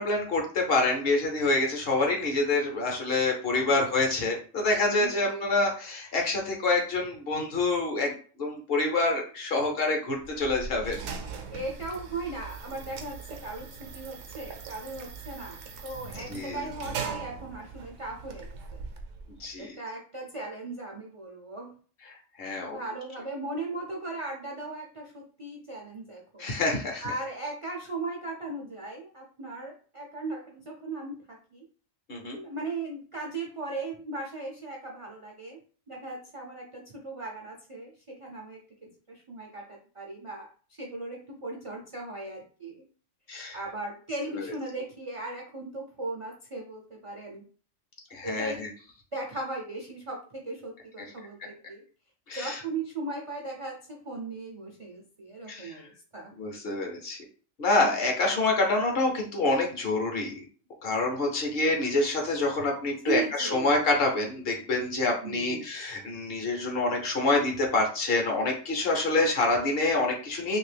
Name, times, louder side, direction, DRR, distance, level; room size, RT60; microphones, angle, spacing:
voice 1, 0.0-11.0 16.3-16.7 19.4-19.8 22.4-22.8 26.4-27.1 32.1-32.4 43.3-43.6 44.3-44.4 48.1-48.7 52.3-52.6 55.5-55.9 56.4-57.2 57.6-60.4 60.8-70.6, left 2 dB, 55° left, 1 dB, 0.8 m, -27 dB
voice 2, 4.8-5.6 11.5-18.8 19.6-21.7 22.7-26.4 27.0-31.6 32.3-35.6 35.9-40.5 40.8-42.8 43.5-47.4 48.2-48.6 49.1-51.8 52.3-56.3 63.0-63.7 65.2-65.6, right 3 dB, 45° right, -1 dB, 0.4 m, -37 dB
sound 1, 10.2-19.5, right 5 dB, 75° right, 0.9 m, -40 dB
2.8 x 2.6 x 3.3 m, 0.41 s
omnidirectional pair, 1.3 m